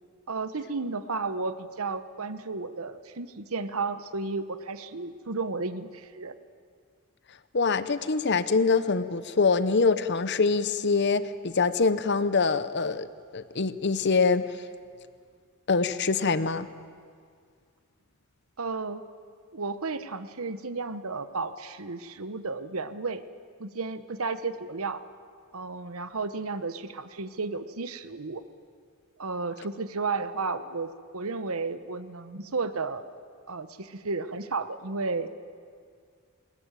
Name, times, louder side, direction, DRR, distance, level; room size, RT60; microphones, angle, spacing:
voice 1, 0.3-6.4 18.6-19.0 19.5-23.2 23.6-25.0 25.5-28.4 29.2-33.0 33.5-35.3, right 4 dB, 75° right, 12 dB, 1.1 m, -33 dB
voice 2, 7.5-13.1 13.3-14.6 15.7-16.7, left 4 dB, 50° left, 13 dB, 0.8 m, -24 dB
21.0 x 19.5 x 9.1 m, 2.1 s
head